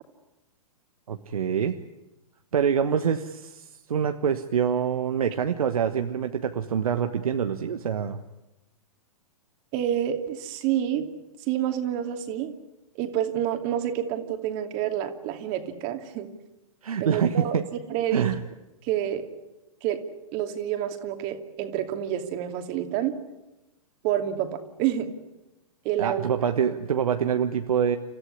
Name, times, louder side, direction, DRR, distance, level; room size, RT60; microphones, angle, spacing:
voice 1, 1.1-1.8 2.5-8.2 16.8-17.6 18.1-18.4 26.0-28.0, right 7 dB, 70° right, 7 dB, 1.3 m, -25 dB
voice 2, 9.7-11.2 11.5-12.5 12.9-16.3 17.0-17.6 17.9-18.3 18.8-19.2 19.8-20.0 20.3-23.2 24.0-25.1 25.8-26.5, right 11 dB, 40° right, 6 dB, 2.7 m, -28 dB
29.5 x 14.5 x 9.8 m, 1.0 s
figure-of-eight pair, 115°, 19 cm